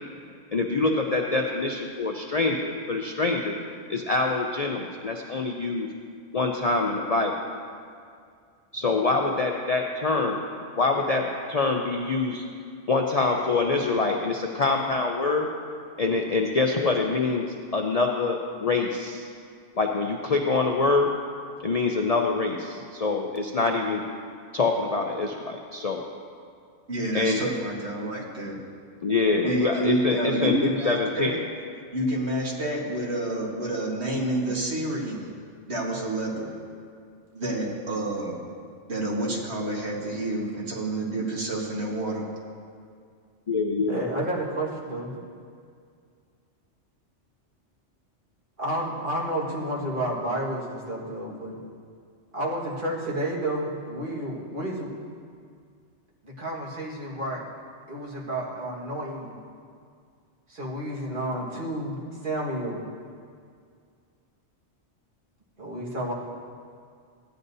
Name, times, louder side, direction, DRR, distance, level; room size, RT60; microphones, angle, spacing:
voice 1, 0.5-3.6 3.9-5.9 6.3-7.3 8.7-10.4 10.8-12.4 12.9-15.5 16.0-17.4 17.7-19.3 19.8-21.1 21.6-24.0 24.5-26.0 27.1-27.4 29.0-31.3 43.5-44.0, left 3 dB, 45° left, 1 dB, 0.5 m, -25 dB
voice 2, 26.9-28.6 29.4-31.4 31.9-35.3 35.7-36.6 37.3-38.4 38.9-42.3, right 1 dB, 60° right, -2 dB, 1.8 m, -29 dB
voice 3, 43.9-45.2 48.6-51.6 52.3-54.9 56.2-57.4 57.9-59.3 60.5-62.8 65.6-66.1, right 1 dB, 45° right, -4 dB, 1.8 m, -31 dB
15.0 x 9.9 x 2.7 m, 2.3 s
omnidirectional pair, 1.3 m